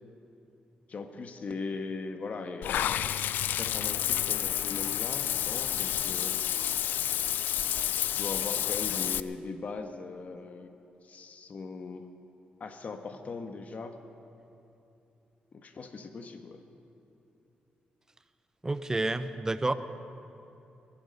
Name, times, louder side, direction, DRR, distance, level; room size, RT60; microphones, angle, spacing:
voice 1, 0.9-3.3 3.6-6.4 6.8-7.0 8.0-10.7 11.0-12.1 12.6-14.0 15.5-16.6, left 4 dB, 50° left, 7 dB, 1.2 m, -40 dB
Water / Bathtub (filling or washing), 2.6-9.2, left 11 dB, 90° left, 0.3 m, -30 dB
voice 2, 18.6-19.7, right 2 dB, 20° right, 12 dB, 0.7 m, -29 dB
21.5 x 12.0 x 5.3 m, 2.8 s
cardioid pair, 90°, 3 cm